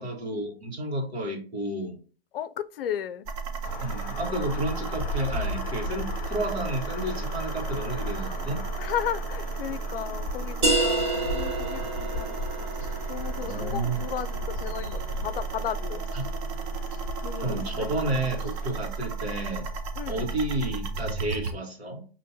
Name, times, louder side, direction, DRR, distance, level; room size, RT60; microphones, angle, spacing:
voice 1, 0.0-2.0 3.8-8.6 13.3-14.1 16.1-16.2 17.4-19.7 20.1-22.1, right 1 dB, 85° right, 1.7 m, -31 dB
voice 2, 2.3-3.3 8.8-12.4 13.1-16.0 17.2-17.9 20.0-20.3, left 9 dB, 65° left, 0.5 m, -34 dB
sound 1, 3.2-21.5, right 4 dB, 35° right, 0.6 m, -34 dB
sound 2, 3.6-18.9, left 2 dB, 25° left, 0.8 m, -37 dB
sound 3, 10.6-16.0, right 2 dB, 50° right, 1.6 m, -30 dB
5.5 x 3.0 x 2.7 m
hypercardioid pair, 125°, 31 cm